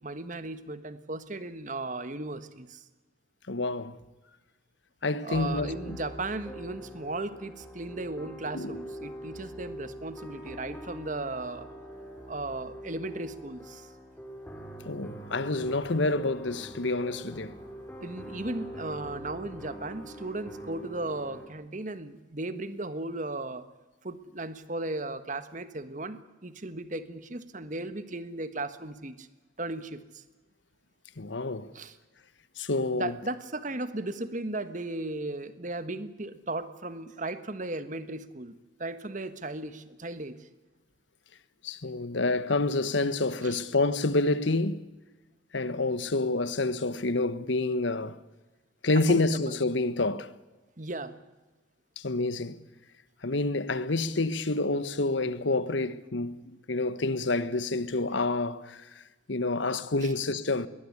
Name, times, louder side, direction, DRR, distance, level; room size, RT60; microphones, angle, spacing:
voice 1, 0.0-2.8 5.2-11.7 12.3-13.9 18.0-23.6 24.0-29.3 29.6-30.2 31.7-32.0 32.9-38.5 38.8-40.5 43.4-43.6 49.1-49.6 50.8-51.2 60.0-60.1, right 2 dB, 40° right, 1.5 m, -36 dB
voice 2, 3.5-4.0 5.0-6.0 8.5-8.8 14.9-17.5 31.2-31.7 32.6-33.2 41.6-44.8 45.5-48.2 48.8-50.3 52.0-52.6 53.2-58.9 59.3-60.7, left 2 dB, 75° left, 1.2 m, -28 dB
sound 1, 5.3-21.5, equal, 10° left, 3.5 m, -44 dB
22.0 x 20.0 x 9.8 m
head